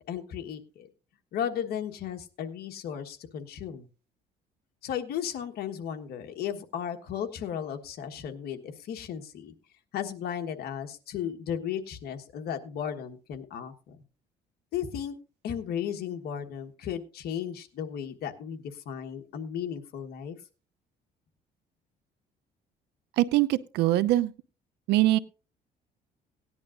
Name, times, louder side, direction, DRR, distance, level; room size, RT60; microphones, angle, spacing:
voice 1, 0.1-0.9 1.3-3.9 4.8-9.5 9.9-14.0 14.7-15.2 15.4-20.4, left 9 dB, 65° left, 6 dB, 1.4 m, -35 dB
voice 2, 23.2-24.3 24.9-25.2, right 15 dB, 85° right, 15 dB, 0.7 m, -23 dB
17.5 x 10.5 x 2.6 m, 0.34 s
cardioid pair, 110°, 17 cm